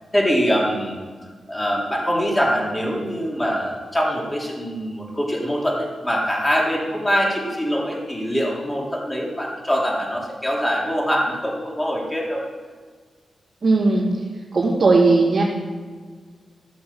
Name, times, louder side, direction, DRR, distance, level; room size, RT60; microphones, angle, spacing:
voice 1, 0.1-1.0 1.5-12.4, equal, 15° left, -3 dB, 3.9 m, -23 dB
voice 2, 13.6-14.1 14.5-15.4, right 3 dB, 40° right, -6 dB, 3.5 m, -17 dB
15.5 x 7.9 x 7.6 m, 1.5 s
cardioid pair, 90°, 0 cm